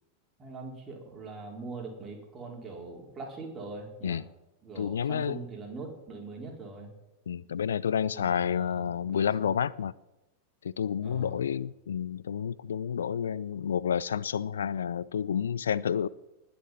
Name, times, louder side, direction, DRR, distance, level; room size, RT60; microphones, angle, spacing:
voice 1, 0.4-4.2 4.6-6.9 8.1-8.9 9.1-9.5 11.0-11.4, right 3 dB, 25° right, 4.6 m, -42 dB
voice 2, 4.8-5.4 7.3-9.9 10.6-16.1, left 8 dB, 65° left, 0.4 m, -30 dB
20.5 x 7.0 x 7.7 m
figure-of-eight pair, 90°, 0 cm